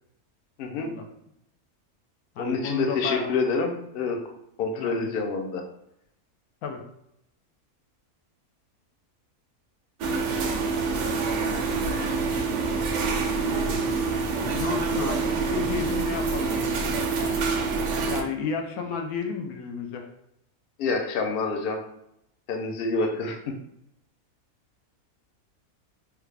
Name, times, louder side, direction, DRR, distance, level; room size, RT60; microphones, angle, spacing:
voice 1, 0.6-0.9 2.4-4.2 4.6-5.6 20.8-21.8 22.5-23.4, left 4 dB, 65° left, 3 dB, 0.5 m, -27 dB
voice 2, 2.4-3.3 4.7-5.2 6.6-6.8 13.5-14.2 14.5-17.0 18.1-20.1, left 5 dB, 80° left, 4 dB, 1.1 m, -32 dB
sound 1, 10.0-18.3, right 4 dB, 65° right, 0.8 m, -26 dB
3.4 x 2.3 x 3.2 m, 0.79 s
omnidirectional pair, 1.5 m